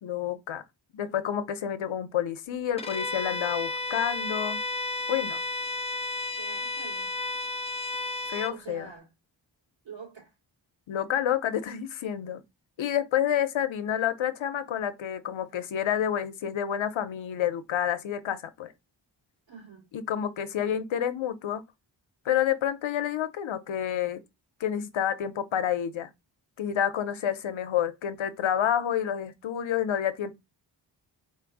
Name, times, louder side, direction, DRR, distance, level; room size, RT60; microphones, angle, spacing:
voice 1, 0.0-0.6 0.9-4.6 5.1-5.4 8.3-8.9 10.9-12.4 12.8-18.7 19.9-21.6 22.2-24.2 24.6-26.1 26.6-30.3, left 10 dB, 85° left, 0.7 m, -29 dB
Bowed string instrument, 2.8-8.6, left 2 dB, 15° left, 0.5 m, -32 dB
voice 2, 6.4-7.1 8.5-9.1 9.8-10.3 19.5-19.9, right 6 dB, 90° right, 2.9 m, -45 dB
4.3 x 2.6 x 4.7 m
wide cardioid pair, 120°, 45 cm